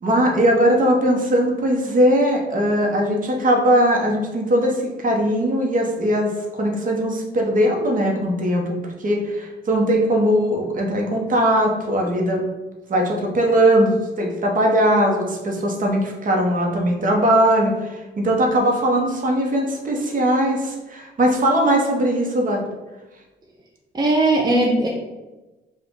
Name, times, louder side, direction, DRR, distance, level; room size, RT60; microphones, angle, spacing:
voice 1, 0.0-6.3 6.6-12.4 12.9-22.6, right 1 dB, 40° right, 1 dB, 1.0 m, -20 dB
voice 2, 23.9-24.9, right 2 dB, 20° right, -2 dB, 0.6 m, -18 dB
4.8 x 2.5 x 3.8 m, 1.1 s
cardioid pair, 90°, 20 cm